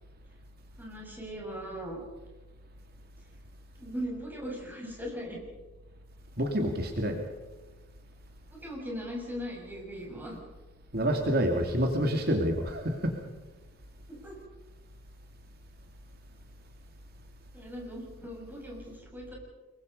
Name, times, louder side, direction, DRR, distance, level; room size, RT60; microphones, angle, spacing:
voice 1, 0.8-2.0 3.8-5.4 8.5-10.4 14.1-14.3 17.5-19.3, equal, 10° right, -2 dB, 6.7 m, -39 dB
voice 2, 6.4-7.2 10.9-13.2, equal, 55° right, 3 dB, 2.6 m, -27 dB
25.5 x 23.0 x 5.5 m, 1.1 s
head